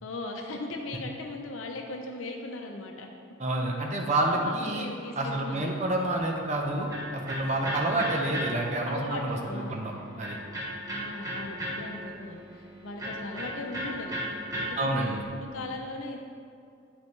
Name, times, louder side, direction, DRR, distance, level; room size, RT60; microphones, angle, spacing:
voice 1, 0.0-3.1 4.3-5.8 7.9-8.1 8.9-9.8 10.9-14.1 14.5-16.2, left 2 dB, 85° left, 2 dB, 0.6 m, -38 dB
voice 2, 3.4-4.9 5.2-10.4 14.8-15.2, right 1 dB, 35° right, 1 dB, 0.7 m, -29 dB
Electric guitar, 6.2-15.3, equal, 15° right, 1.1 m, -37 dB
8.8 x 5.3 x 3.2 m, 2.4 s
head